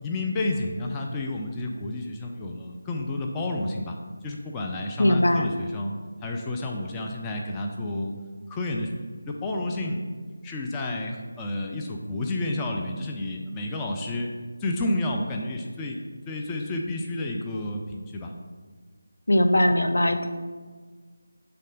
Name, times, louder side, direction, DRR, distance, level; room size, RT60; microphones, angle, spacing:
voice 1, 0.0-3.9 4.2-5.9 6.2-8.1 8.5-10.0 10.4-14.3 14.6-16.0 16.3-18.3, left 2 dB, 10° left, 0 dB, 0.4 m, -30 dB
voice 2, 5.0-5.5 19.3-20.3, left 1 dB, 70° left, 6 dB, 0.6 m, -20 dB
6.5 x 3.5 x 4.9 m, 1.5 s
figure-of-eight pair, 160°, 0 cm